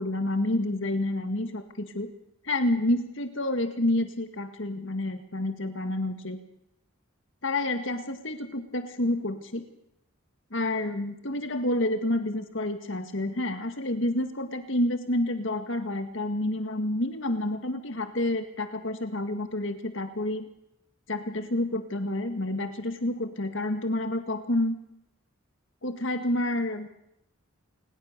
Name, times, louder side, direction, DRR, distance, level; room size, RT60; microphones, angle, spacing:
voice 1, 0.0-2.1 2.4-6.4 7.4-9.6 10.5-20.5 21.1-24.8 25.8-27.0, left 1 dB, 60° left, 8 dB, 2.0 m, -29 dB
28.5 x 20.0 x 6.8 m, 0.81 s
head